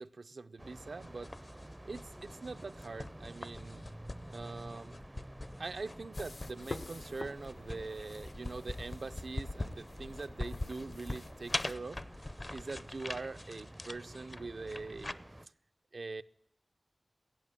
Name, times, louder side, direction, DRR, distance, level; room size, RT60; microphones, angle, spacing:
voice 1, 0.0-1.3 1.8-3.8 4.3-5.0 5.6-12.0 12.5-15.2 15.9-16.2, right 3 dB, 85° right, 0.5 m, -43 dB
sound 1, 0.6-15.5, right 1 dB, 20° right, 0.4 m, -51 dB
sound 2, 1.0-15.1, left 2 dB, 40° left, 0.5 m, -43 dB
sound 3, 6.1-11.7, left 3 dB, 80° left, 0.8 m, -49 dB
14.0 x 8.6 x 8.9 m
wide cardioid pair, 75°, 0 cm